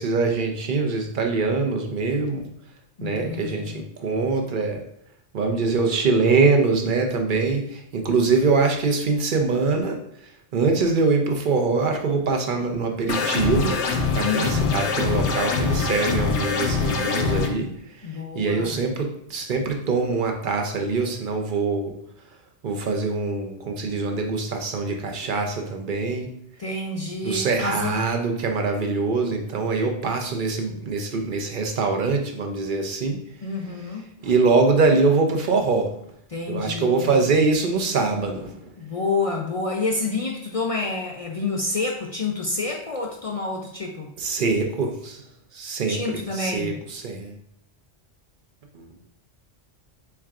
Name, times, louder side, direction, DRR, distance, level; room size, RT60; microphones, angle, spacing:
voice 1, 0.0-2.4 3.0-4.8 5.3-10.0 10.5-13.8 14.1-17.7 18.0-18.1 18.3-21.9 22.6-26.3 27.2-33.2 34.2-35.9 36.5-38.7 44.2-45.2 45.5-47.3 48.7-48.9, right 4 dB, 50° right, 3 dB, 0.7 m, -23 dB
voice 2, 3.0-3.8 14.2-14.8 18.0-18.7 26.6-28.0 33.4-34.0 36.3-37.2 38.8-44.1 45.9-46.8, left 3 dB, 50° left, 0 dB, 0.4 m, -28 dB
sound 1, 13.1-17.5, left 4 dB, 75° left, 1.0 m, -24 dB
4.6 x 4.4 x 2.4 m, 0.71 s
omnidirectional pair, 1.2 m